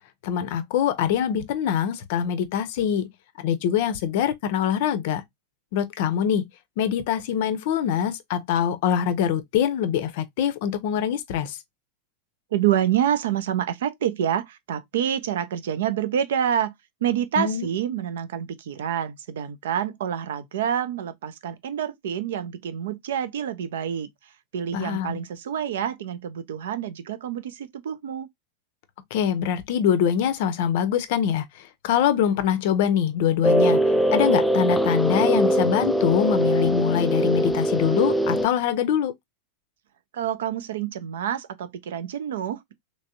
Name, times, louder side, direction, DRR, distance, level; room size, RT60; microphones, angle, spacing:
voice 1, 0.2-3.1 3.4-5.2 5.7-6.5 6.8-11.6 17.4-17.7 24.7-25.2 29.1-31.4 31.8-33.8 34.1-39.1, left 9 dB, 50° left, 0.6 m, -24 dB
voice 2, 12.5-16.7 17.0-24.1 24.5-28.3 40.1-42.7, right 9 dB, 60° right, 0.5 m, -27 dB
sound 1, 33.4-38.5, right 1 dB, 5° left, 0.3 m, -22 dB
3.3 x 3.2 x 2.7 m
figure-of-eight pair, 90°, 0 cm